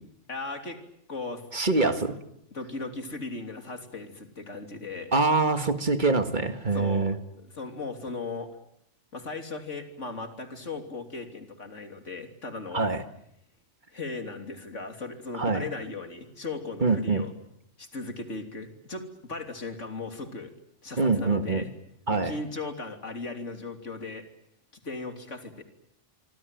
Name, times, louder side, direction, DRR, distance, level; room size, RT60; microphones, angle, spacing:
voice 1, 0.3-0.8 1.1-1.5 1.8-2.0 2.5-5.1 6.7-8.6 9.1-12.9 13.9-17.3 17.8-20.5 20.8-21.7 22.1-24.3 24.8-25.6, left 3 dB, 90° left, 6 dB, 3.5 m, -37 dB
voice 2, 1.5-2.1 5.1-7.1 12.7-13.0 15.4-15.6 16.8-17.2 21.0-21.6 22.1-22.4, right 3 dB, 40° right, 9 dB, 1.8 m, -24 dB
26.0 x 25.0 x 9.1 m, 0.75 s
omnidirectional pair, 1.2 m